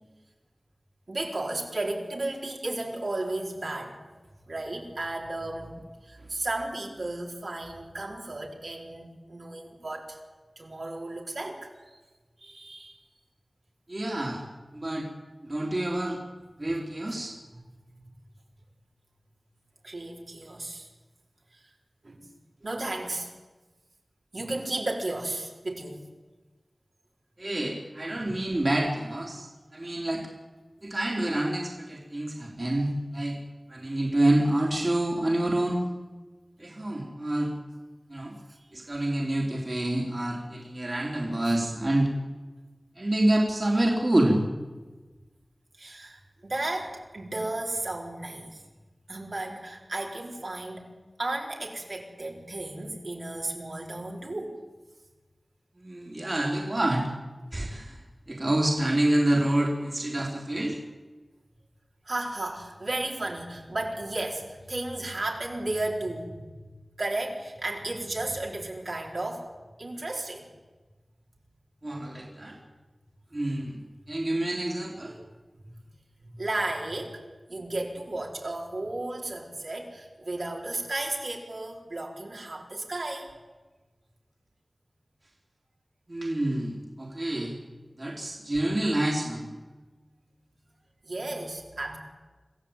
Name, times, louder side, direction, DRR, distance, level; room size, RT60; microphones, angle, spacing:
voice 1, 1.1-4.0 4.5-5.8 6.0-10.2 10.6-12.0 12.4-13.0 17.1-17.2 19.8-20.9 21.5-21.7 22.0-22.3 22.6-23.3 24.3-26.0 28.1-28.3 41.4-41.6 45.8-48.6 49.1-54.6 62.0-66.6 67.0-69.5 69.8-70.5 76.2-77.2 77.5-83.3 91.0-92.0, right 2 dB, 65° right, -1 dB, 4.8 m, -34 dB
voice 2, 13.9-14.4 14.7-15.1 15.4-16.2 16.6-17.4 27.4-30.3 30.8-33.4 33.7-35.8 36.6-37.5 38.1-38.4 38.7-42.1 43.0-44.4 55.8-57.1 57.5-58.0 58.3-60.8 71.8-72.6 73.3-73.8 74.1-75.2 86.1-87.5 88.0-89.5, right 1 dB, 40° right, 0 dB, 3.8 m, -27 dB
26.5 x 15.0 x 9.0 m, 1.3 s
wide cardioid pair, 60°, 0 cm